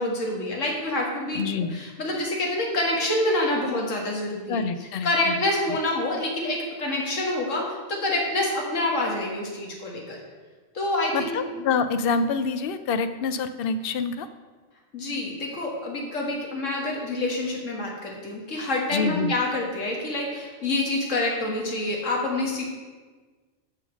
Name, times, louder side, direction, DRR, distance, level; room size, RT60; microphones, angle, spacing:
voice 1, 0.0-1.4 1.7-4.6 5.0-10.2 10.7-11.6 14.9-22.6, left 2 dB, 80° left, -1 dB, 2.0 m, -27 dB
voice 2, 1.3-1.8 4.5-5.3 11.1-14.3 18.9-19.3, left 5 dB, 55° left, 10 dB, 0.7 m, -26 dB
7.7 x 6.7 x 6.2 m, 1.4 s
omnidirectional pair, 1.3 m